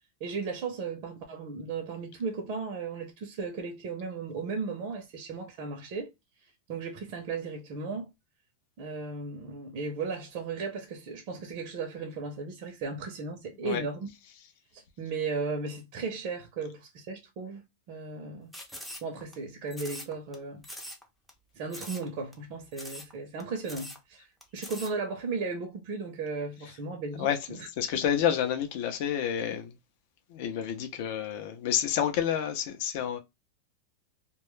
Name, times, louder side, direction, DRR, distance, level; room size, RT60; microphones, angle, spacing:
voice 1, 0.2-6.1 6.4-8.1 8.8-14.1 14.7-20.6 21.5-24.3 24.5-27.7, right 4 dB, 45° right, 0.6 m, -36 dB
sound 1, 18.5-19.4 19.7-20.4 20.6-21.0 21.3-21.4 21.7-22.1 22.3-22.4 22.7-23.1 23.4-23.5 23.7-24.0 24.4-24.9, equal, ahead, 0.5 m, -42 dB
voice 2, 27.8-29.7 30.3-33.2, left 9 dB, 50° left, 0.5 m, -29 dB
2.2 x 2.0 x 3.0 m
supercardioid pair, 160°, 0 cm